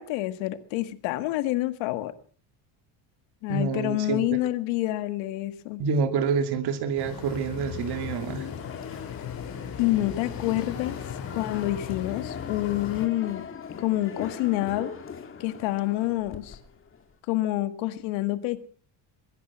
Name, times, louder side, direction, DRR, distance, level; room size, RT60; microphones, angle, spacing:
voice 1, 0.0-2.1 3.4-5.8 9.8-11.0 11.4-13.5 13.8-14.9 15.4-16.6 17.3-18.6, left 16 dB, 75° left, 1.8 m, -27 dB
voice 2, 3.5-4.4 5.8-8.5, right 6 dB, 55° right, 2.6 m, -27 dB
sound 1, 7.0-13.1, left 8 dB, 50° left, 4.5 m, -37 dB
sound 2, 8.5-17.1, left 6 dB, 25° left, 2.3 m, -41 dB
22.0 x 10.5 x 5.9 m
cardioid pair, 120°, 46 cm